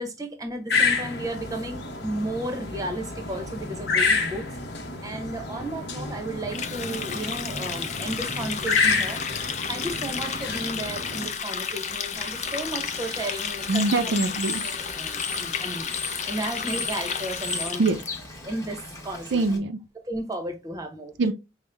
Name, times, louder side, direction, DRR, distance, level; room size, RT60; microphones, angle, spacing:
voice 1, 0.0-4.5 5.0-9.2 9.7-13.8 15.0-15.9 16.3-17.8 18.4-19.6 20.1-21.1, right 1 dB, 20° right, 0.8 m, -33 dB
sound 1, 0.7-11.3, left 4 dB, 60° left, 0.9 m, -29 dB
Water tap faucet, 6.5-18.1, left 7 dB, 40° left, 0.5 m, -32 dB
Bird / Water, 12.1-19.6, left 3 dB, 15° left, 1.1 m, -37 dB
voice 2, 13.7-14.6 17.8-18.0 19.3-19.8 21.2-21.3, right 3 dB, 70° right, 0.4 m, -23 dB
5.3 x 2.1 x 3.3 m
head